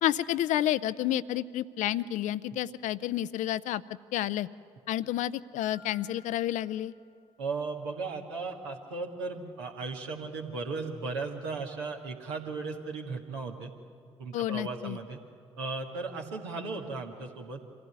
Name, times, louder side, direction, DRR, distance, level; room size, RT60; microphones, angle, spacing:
voice 1, 0.0-3.8 4.1-4.5 4.9-6.9 14.3-15.0, left 13 dB, 60° left, 16 dB, 0.5 m, -30 dB
Marimba xylophone, 5.6-7.8, left 4 dB, 85° left, 1.6 m, -57 dB
voice 2, 7.4-13.7 14.2-15.2 15.6-17.7, right 4 dB, 80° right, 1 dB, 1.7 m, -36 dB
25.0 x 15.5 x 9.6 m, 2.3 s
figure-of-eight pair, 40°, 14 cm